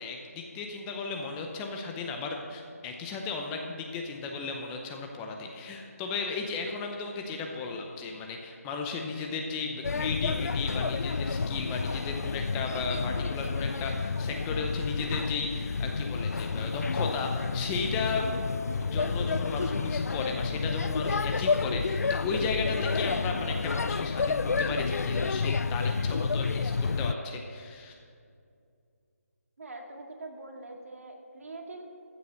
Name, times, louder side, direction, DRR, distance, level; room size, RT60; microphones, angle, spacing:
voice 1, 0.0-27.9, left 4 dB, 10° left, 3 dB, 0.6 m, -35 dB
Male speech man speaking / Child speech kid speaking / Chatter, 9.8-27.1, left 4 dB, 80° left, 0.4 m, -30 dB
voice 2, 29.6-31.8, right 2 dB, 65° right, 2 dB, 2.1 m, -43 dB
14.0 x 7.0 x 6.5 m, 2.3 s
figure-of-eight pair, 165°, 8 cm